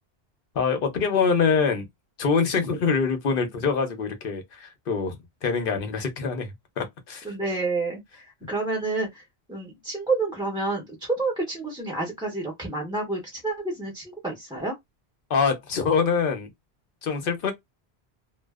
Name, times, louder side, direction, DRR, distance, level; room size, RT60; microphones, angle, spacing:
voice 1, 0.6-1.9 2.2-6.5 6.8-7.2 15.3-16.5 17.0-17.5, left 5 dB, 60° left, 0.8 m, -24 dB
voice 2, 7.2-9.2 9.5-14.7, right 3 dB, 5° right, 0.7 m, -29 dB
2.5 x 2.2 x 2.3 m
omnidirectional pair, 1.1 m